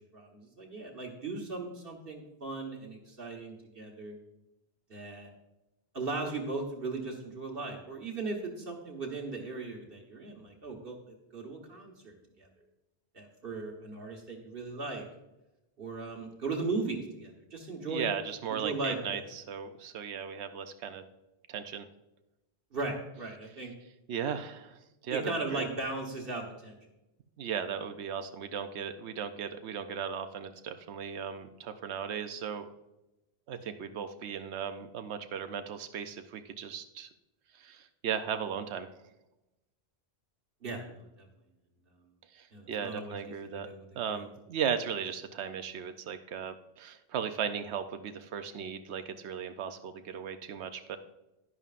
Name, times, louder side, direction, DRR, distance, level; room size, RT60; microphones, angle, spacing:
voice 1, 0.1-4.2 4.9-5.3 5.9-12.5 13.1-15.1 15.8-18.1 18.6-19.2 22.7-23.7 25.1-26.8 40.6-41.3 42.5-44.2, right 3 dB, 60° right, 0 dB, 1.5 m, -38 dB
voice 2, 17.8-21.0 21.5-21.9 24.1-25.7 27.4-32.7 33.5-37.1 37.5-38.9 42.3-43.7 43.9-51.0, right 7 dB, 85° right, 9 dB, 0.9 m, -36 dB
11.0 x 11.0 x 2.5 m, 0.96 s
omnidirectional pair, 1.1 m